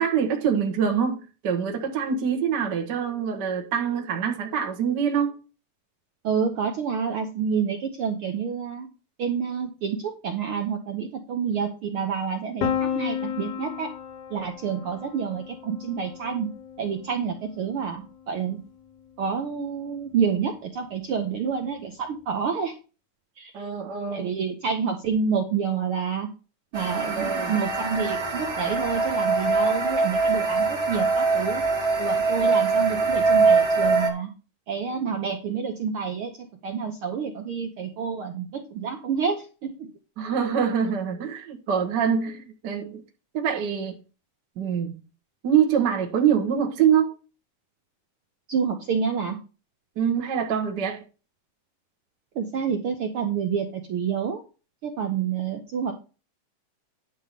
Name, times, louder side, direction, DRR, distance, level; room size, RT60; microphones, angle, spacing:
voice 1, 0.0-5.4 23.5-24.3 27.2-27.5 40.2-43.0 43.3-44.0 44.6-45.0 45.4-47.1 49.9-51.0, right 7 dB, 60° right, 1.1 m, -25 dB
voice 2, 6.2-8.9 9.2-13.9 14.3-16.5 16.8-18.6 19.2-22.8 23.4-23.5 24.1-26.3 26.7-31.6 32.0-34.3 34.7-39.9 48.5-49.4 52.3-54.4 54.8-55.9, right 6 dB, 85° right, 1.2 m, -28 dB
Piano, 12.6-18.4, left 8 dB, 65° left, 1.6 m, -33 dB
sound 1, 26.7-34.1, right 4 dB, 30° right, 1.3 m, -23 dB
11.0 x 3.8 x 6.7 m
omnidirectional pair, 3.9 m